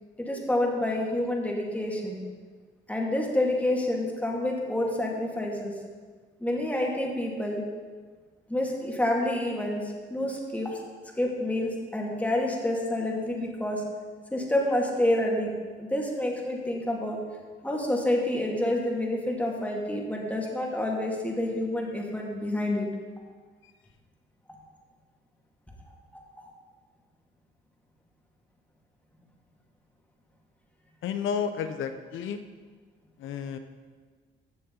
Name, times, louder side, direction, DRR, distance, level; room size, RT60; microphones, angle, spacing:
voice 1, 0.2-2.2 2.9-5.7 6.4-7.6 8.5-10.8 11.2-13.8 14.3-17.2 17.6-22.9 26.4-26.5, left 1 dB, 5° left, -1 dB, 2.2 m, -28 dB
voice 2, 31.0-32.4 33.2-33.6, left 7 dB, 80° left, 8 dB, 0.9 m, -31 dB
15.0 x 6.8 x 4.0 m, 1.5 s
cardioid pair, 90°, 20 cm